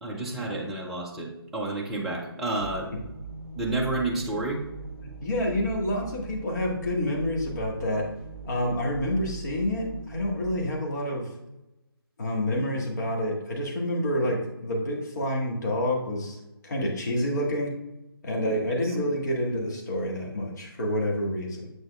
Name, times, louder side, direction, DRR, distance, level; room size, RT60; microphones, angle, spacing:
voice 1, 0.0-2.9 3.6-4.6 18.5-18.6 18.8-19.0, right 2 dB, ahead, -3 dB, 0.4 m, -30 dB
sound 1, 2.6-10.8, right 4 dB, 25° right, 0.9 m, -41 dB
voice 2, 5.0-8.1 8.5-11.3 12.2-16.4 16.6-17.7 18.2-21.7, left 1 dB, 45° left, -1 dB, 1.5 m, -28 dB
7.8 x 6.1 x 2.3 m, 0.93 s
figure-of-eight pair, 150°, 13 cm